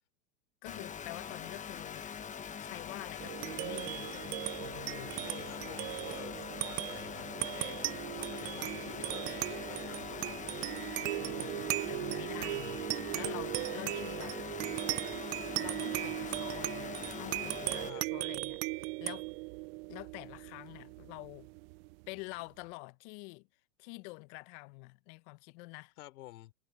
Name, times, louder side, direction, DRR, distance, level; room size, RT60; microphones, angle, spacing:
voice 1, 0.6-2.1 2.6-5.2 11.1-14.4 15.6-19.3 19.9-21.5 22.1-23.5 23.8-25.9, left 27 dB, 45° left, 1.0 m, -47 dB
sound 1, 0.6-17.9, left 7 dB, 15° left, 1.1 m, -43 dB
sound 2, 3.2-22.1, right 26 dB, 40° right, 0.5 m, -38 dB
voice 2, 5.2-10.4 17.8-18.1 26.0-26.5, left 16 dB, 65° left, 4.2 m, -50 dB
hypercardioid pair, 125°, 47 cm